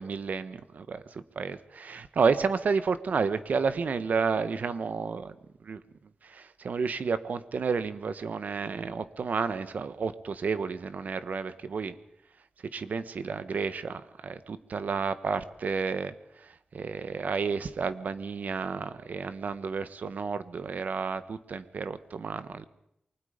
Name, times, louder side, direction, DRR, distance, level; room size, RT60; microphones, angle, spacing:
voice 1, 0.0-5.3 5.6-5.8 6.2-11.9 12.7-22.7, right 5 dB, 80° right, 12 dB, 1.4 m, -31 dB
28.5 x 24.0 x 5.2 m, 0.79 s
wide cardioid pair, 115°, 3 cm